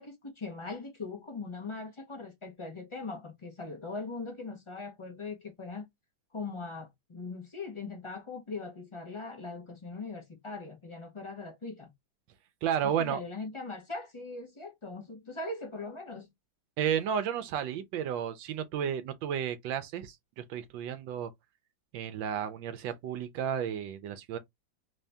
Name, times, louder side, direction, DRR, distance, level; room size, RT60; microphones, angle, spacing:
voice 1, 0.0-5.9 6.3-11.9 12.8-16.3, left 3 dB, 40° left, 0.4 m, -40 dB
voice 2, 12.6-13.2 16.8-21.3 21.9-24.4, right 8 dB, 90° right, 1.3 m, -32 dB
3.7 x 2.7 x 3.3 m
omnidirectional pair, 2.0 m